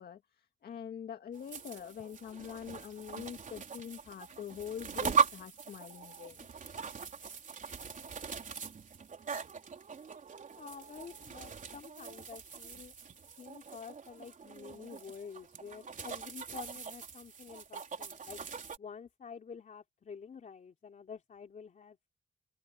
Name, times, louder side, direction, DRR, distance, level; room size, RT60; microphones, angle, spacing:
voice 1, 0.0-6.5, left 8 dB, 70° left, 1.9 m, -44 dB
sound 1, 1.3-18.8, right 6 dB, 50° right, 3.9 m, -39 dB
voice 2, 10.6-12.9 13.4-18.4 18.8-22.1, left 6 dB, 50° left, 3.6 m, -49 dB
cardioid pair, 90°, 16 cm